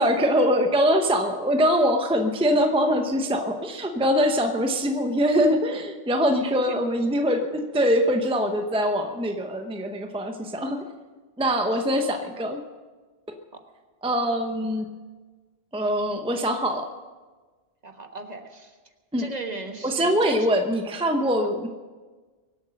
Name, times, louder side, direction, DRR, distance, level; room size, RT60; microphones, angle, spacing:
voice 1, 0.0-10.8 11.4-12.6 14.0-14.9 15.7-16.9 19.1-19.3 19.8-21.7, equal, 5° right, 4 dB, 0.9 m, -23 dB
voice 2, 17.8-18.7 19.2-20.5 21.4-21.5, right 2 dB, 40° right, 4 dB, 1.5 m, -37 dB
23.5 x 8.3 x 6.4 m, 1.4 s
omnidirectional pair, 1.1 m